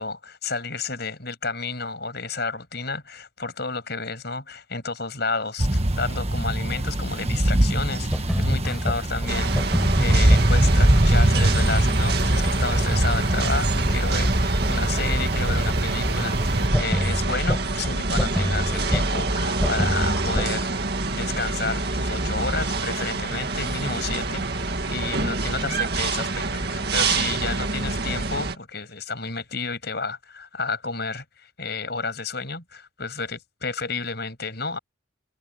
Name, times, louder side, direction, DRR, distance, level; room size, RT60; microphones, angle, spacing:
voice 1, 0.0-20.7 21.1-34.8, left 4 dB, 50° left, 7.3 m, -31 dB
sound 1, 5.6-16.7, right 1 dB, 30° right, 1.4 m, -22 dB
sound 2, 8.1-20.5, equal, ahead, 6.2 m, -27 dB
sound 3, 9.3-28.6, right 3 dB, 50° right, 2.2 m, -26 dB
head